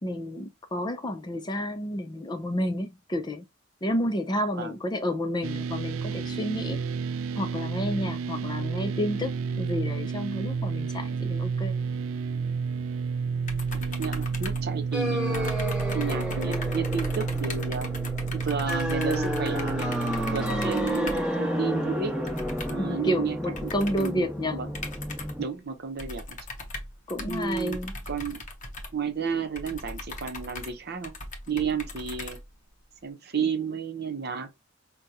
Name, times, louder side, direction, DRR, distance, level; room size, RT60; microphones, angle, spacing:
voice 1, 0.0-3.4 3.8-6.8 7.4-11.9 22.8-24.6 27.1-27.9, equal, 20° left, 0.5 m, -30 dB
sound 1, 5.4-20.7, right 5 dB, 75° right, 0.4 m, -31 dB
sound 2, 13.5-15.1 15.3-21.4 22.3-22.9 23.6-24.2 24.7-25.5 26.0-32.8, left 2 dB, 40° left, 0.8 m, -38 dB
voice 2, 13.7-15.6 15.9-17.9 18.3-22.2 22.7-23.4 23.6-23.7 24.0-24.7 25.4-26.4 27.2-28.4 28.9-31.1 31.5-32.4 33.0-34.5, right 6 dB, 50° right, 0.7 m, -32 dB
sound 3, 14.9-25.4, equal, 5° right, 1.2 m, -31 dB
5.0 x 2.2 x 2.7 m
head